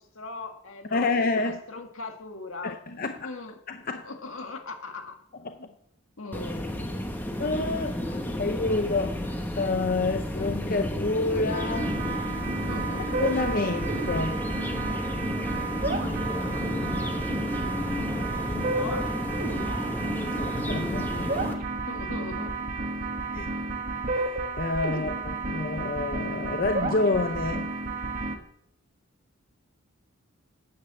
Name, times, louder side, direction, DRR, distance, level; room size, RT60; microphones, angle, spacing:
voice 1, 0.0-2.8 3.0-3.6 3.8-5.2 5.6-5.7 6.2-7.1 12.5-13.2 16.3-17.2 18.8-20.0 21.9-22.6 24.9-25.0, left 3 dB, 75° left, 4 dB, 1.9 m, -40 dB
voice 2, 0.9-1.6 2.6-3.3 3.7-4.0 5.4-5.5 7.4-12.2 13.2-14.4 20.3-21.5 23.3-23.5 24.1-27.7, left 3 dB, 45° left, 7 dB, 0.6 m, -29 dB
sound 1, 6.3-21.5, equal, 10° left, 1.2 m, -32 dB
sound 2, 11.5-28.4, right 3 dB, 40° right, 1.5 m, -31 dB
10.0 x 8.4 x 7.5 m, 0.74 s
head